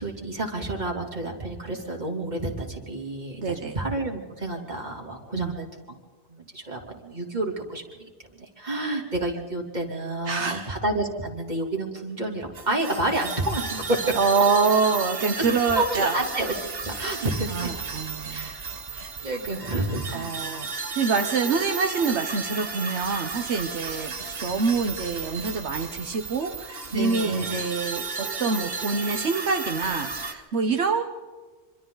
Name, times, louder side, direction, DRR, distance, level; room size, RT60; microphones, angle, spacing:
voice 1, 0.0-5.7 6.3-14.1 15.4-15.5 15.7-16.5 16.8-17.7 18.3-18.6 19.2-20.5 26.9-27.6, right 2 dB, 40° right, 0 dB, 3.4 m, -29 dB
voice 2, 3.4-3.8 5.3-5.5 10.3-10.7 14.2-16.2 17.5-18.5 18.9-19.1 20.1-20.7 21.0-24.1 24.4-31.0, right 4 dB, 75° right, 5 dB, 1.4 m, -26 dB
sound 1, 12.5-30.3, right 4 dB, 60° right, 1.7 m, -34 dB
26.0 x 25.5 x 4.0 m, 1.4 s
omnidirectional pair, 1.2 m